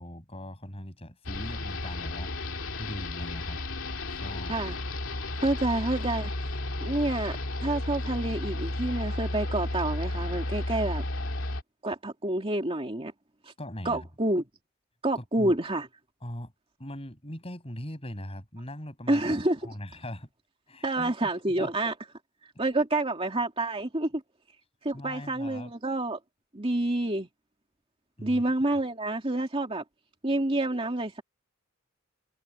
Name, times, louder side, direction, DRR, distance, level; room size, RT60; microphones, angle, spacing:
voice 1, 0.0-2.3 2.8-3.6 4.1-4.7 13.6-14.1 15.2-15.6 16.2-16.5 16.8-19.2 19.6-20.3 20.7-21.7 24.9-25.7 28.2-28.4, left 1 dB, 30° left, 7.4 m, -40 dB
sound 1, 1.3-11.6, left 1 dB, 65° left, 2.9 m, -33 dB
voice 2, 5.4-6.3 6.8-7.4 7.6-11.0 11.8-13.1 13.8-14.4 15.0-15.8 19.1-19.7 20.8-21.9 22.6-24.2 24.8-26.2 26.5-27.3 28.2-29.8 30.2-31.2, right 2 dB, 25° right, 2.6 m, -28 dB
head